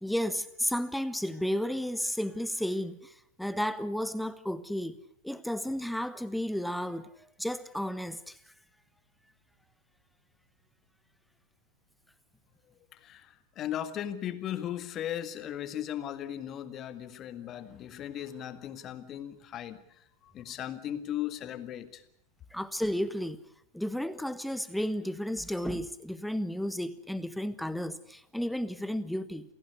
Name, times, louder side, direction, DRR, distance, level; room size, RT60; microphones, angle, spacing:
voice 1, 0.0-3.0 3.4-5.0 5.2-7.1 7.4-8.3 22.5-23.4 23.7-29.4, equal, ahead, 1.3 m, -32 dB
voice 2, 12.9-22.0, left 11 dB, 30° left, 1.9 m, -37 dB
28.5 x 17.5 x 8.2 m
figure-of-eight pair, 90°, 0 cm